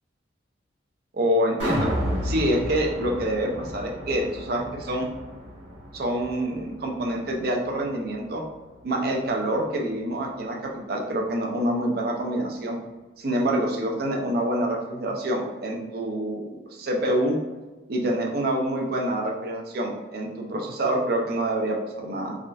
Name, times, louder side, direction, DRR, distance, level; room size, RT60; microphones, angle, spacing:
voice 1, 1.1-1.9 2.2-5.1 5.9-8.4 8.8-12.8 13.2-17.4 17.9-22.3, right 1 dB, 55° right, 0 dB, 0.5 m, -26 dB
sound 1, 1.6-7.8 8.2-8.3, equal, 75° right, 1.4 m, -32 dB
3.5 x 2.3 x 2.5 m, 1.2 s
head